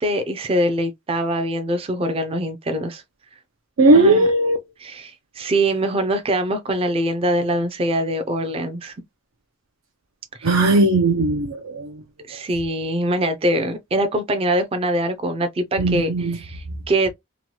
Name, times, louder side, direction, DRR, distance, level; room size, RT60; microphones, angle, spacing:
voice 1, 0.0-3.0 3.9-4.3 4.8-8.9 10.4-10.6 12.3-17.1, right 1 dB, 30° right, 0.4 m, -23 dB
voice 2, 3.8-4.6 10.4-11.9 15.8-16.4, right 2 dB, 85° right, 0.6 m, -17 dB
3.0 x 2.2 x 2.8 m
head